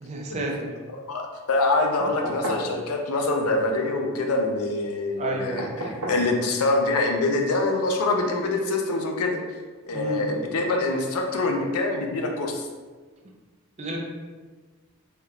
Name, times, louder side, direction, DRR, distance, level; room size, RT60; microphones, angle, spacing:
voice 1, 0.0-0.7 5.2-5.6 9.9-10.3 13.8-14.0, right 2 dB, 30° right, 0 dB, 0.4 m, -31 dB
voice 2, 1.5-9.4 9.8-12.6, left 2 dB, 90° left, 2 dB, 0.5 m, -25 dB
sound 1, 2.0-2.7 5.6-6.3 7.9-8.0, right 1 dB, 85° right, 0.7 m, -31 dB
3.3 x 2.8 x 2.3 m, 1.4 s
head